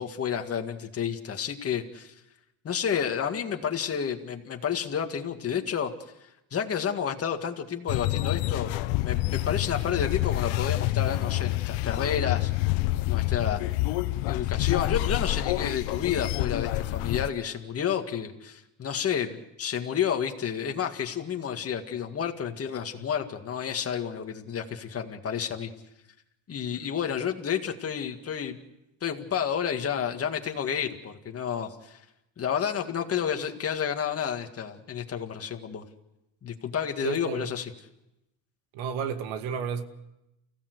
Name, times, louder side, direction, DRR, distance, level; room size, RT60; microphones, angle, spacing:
voice 1, 0.0-2.1 2.6-5.9 6.5-8.8 9.0-12.5 13.0-13.6 14.3-25.7 26.5-28.6 29.0-32.0 32.4-35.8 36.4-37.7, left 8 dB, 30° left, 4 dB, 2.1 m, -30 dB
sound 1, 7.9-17.3, left 17 dB, 75° left, 0.9 m, -27 dB
voice 2, 37.0-37.5 38.7-39.8, right 7 dB, 80° right, 8 dB, 2.2 m, -32 dB
29.0 x 16.5 x 8.1 m, 0.91 s
cardioid pair, 145°, 47 cm